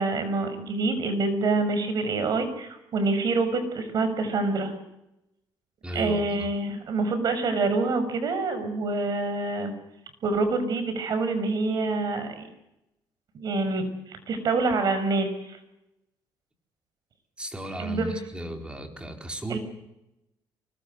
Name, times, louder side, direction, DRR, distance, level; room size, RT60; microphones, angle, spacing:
voice 1, 0.0-4.7 5.9-9.7 10.2-12.5 13.3-15.6 17.8-18.2 19.5-19.6, right 3 dB, 55° right, 9 dB, 6.3 m, -26 dB
voice 2, 5.8-6.3 17.4-19.6, equal, 15° right, 4 dB, 4.5 m, -35 dB
24.0 x 20.5 x 8.1 m, 0.88 s
cardioid pair, 110°, 8 cm